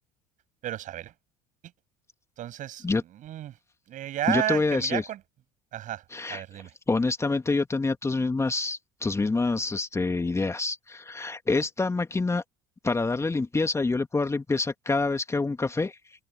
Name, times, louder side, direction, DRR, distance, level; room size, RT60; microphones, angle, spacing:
voice 1, 0.6-1.1 2.4-3.5 3.9-5.2 5.7-6.7, right 12 dB, 50° right, 7.0 m, -32 dB
voice 2, 4.3-5.0 6.1-12.4 12.8-16.0, left 3 dB, 15° left, 2.2 m, -27 dB
figure-of-eight pair, 65°, 17 cm